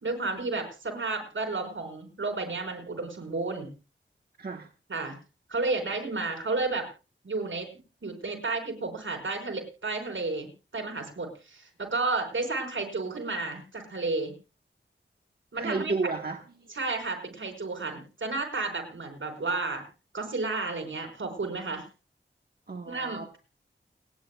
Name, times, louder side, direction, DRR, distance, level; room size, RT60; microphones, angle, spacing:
voice 1, 0.0-3.7 4.9-5.2 5.5-6.9 7.2-7.7 8.0-14.3 15.5-15.9 16.7-19.8 20.1-21.8 22.9-23.4, right 3 dB, 80° right, 3 dB, 4.8 m, -32 dB
voice 2, 4.4-4.7 15.6-16.4 22.7-23.4, right 3 dB, 50° right, 4 dB, 1.2 m, -32 dB
29.5 x 9.9 x 2.2 m, 0.32 s
wide cardioid pair, 80°, 20 cm